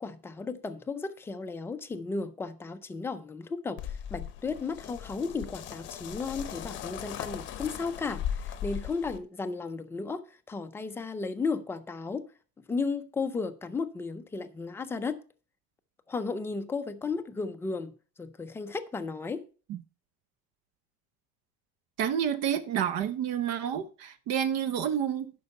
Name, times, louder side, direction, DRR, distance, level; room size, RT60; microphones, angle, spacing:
voice 1, 0.0-10.2 10.5-12.3 12.7-15.2 16.1-19.4, left 4 dB, 10° left, 0.4 m, -34 dB
sound 1, 3.8-9.2, left 9 dB, 40° left, 0.8 m, -38 dB
voice 2, 22.0-25.3, right 9 dB, 55° right, 0.8 m, -29 dB
10.5 x 5.4 x 5.4 m
cardioid pair, 180°, 31 cm